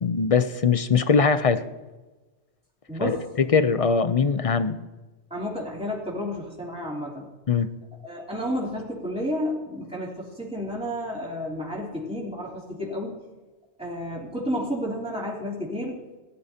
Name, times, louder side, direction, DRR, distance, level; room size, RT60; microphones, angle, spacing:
voice 1, 0.0-1.6 3.0-4.8 7.5-7.7, left 5 dB, 45° left, 11 dB, 0.5 m, -21 dB
voice 2, 2.9-3.2 5.3-7.3 8.0-13.1 13.8-15.9, equal, 5° right, -5 dB, 3.1 m, -31 dB
18.5 x 12.0 x 2.8 m, 1.2 s
omnidirectional pair, 1.2 m